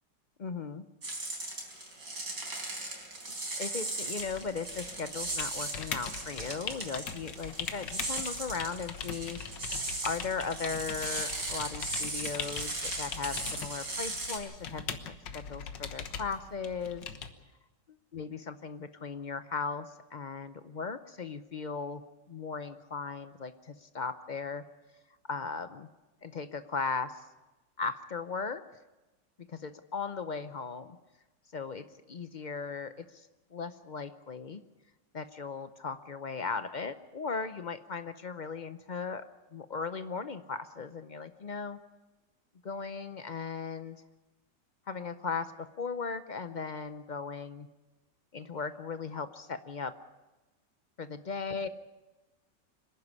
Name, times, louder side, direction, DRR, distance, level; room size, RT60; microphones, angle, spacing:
voice 1, 0.4-0.8 3.6-9.4 10.0-14.8 15.3-17.0 18.1-22.0 22.3-24.6 25.3-25.9 26.2-27.3 27.8-28.6 29.5-31.0 31.5-34.6 35.1-39.2 39.5-41.8 42.6-44.0 44.9-47.7 48.3-49.9 51.0-51.7, left 5 dB, 60° left, 11 dB, 0.4 m, -37 dB
sound 1, 1.0-14.4, right 2 dB, 70° right, 4.9 m, -37 dB
sound 2, 4.2-17.3, left 6 dB, 85° left, 1.9 m, -41 dB
25.5 x 11.5 x 9.8 m, 1.1 s
omnidirectional pair, 1.9 m